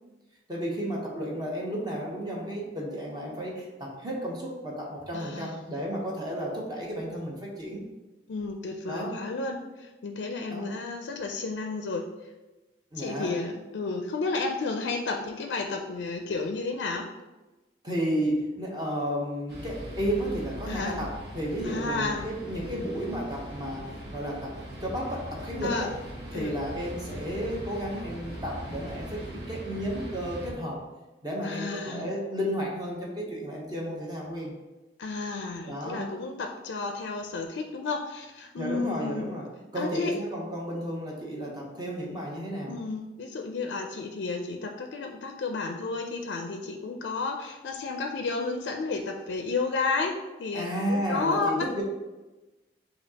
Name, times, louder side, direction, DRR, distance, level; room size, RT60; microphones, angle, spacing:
voice 1, 0.5-7.8 8.9-9.2 10.5-10.7 12.9-13.3 17.8-25.9 26.3-30.8 31.2-34.5 35.7-36.1 38.6-42.8 50.5-51.8, equal, 20° right, -2 dB, 0.8 m, -33 dB
voice 2, 5.1-5.6 8.3-12.0 13.0-17.1 20.7-21.1 21.6-22.2 25.6-25.9 26.3-26.5 31.4-32.1 35.0-39.4 39.7-40.1 42.7-51.7, left 3 dB, 85° left, 3 dB, 0.4 m, -32 dB
underneath those railwaybridges, 19.5-30.5, right 1 dB, 65° right, 1.3 m, -40 dB
6.8 x 2.7 x 2.8 m, 1.1 s
head